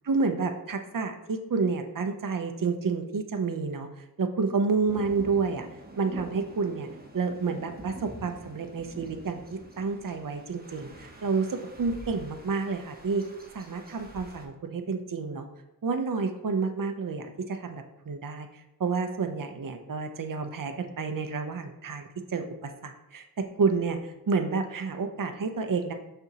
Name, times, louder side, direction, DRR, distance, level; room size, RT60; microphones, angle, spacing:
voice 1, 0.1-3.9 4.2-5.7 6.0-6.9 7.1-13.2 13.5-15.5 15.8-25.9, right 4 dB, 55° right, 6 dB, 0.6 m, -30 dB
sound 1, 4.9-14.5, right 2 dB, 25° right, 1.1 m, -46 dB
6.7 x 6.0 x 2.8 m, 0.89 s
wide cardioid pair, 50°, 38 cm